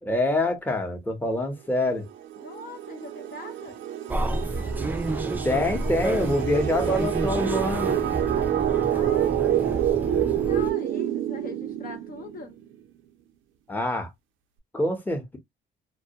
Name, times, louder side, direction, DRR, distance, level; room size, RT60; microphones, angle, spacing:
voice 1, 0.0-2.0 5.4-8.0 13.7-14.1 14.7-15.4, left 1 dB, 10° left, 0.7 m, -25 dB
sound 1, 2.0-12.5, right 11 dB, 80° right, 0.4 m, -28 dB
voice 2, 2.4-3.8 8.8-12.5, left 3 dB, 45° left, 0.6 m, -42 dB
sound 2, 4.1-10.7, right 2 dB, 10° right, 0.3 m, -30 dB
2.2 x 2.1 x 2.7 m
cardioid pair, 90°, 20 cm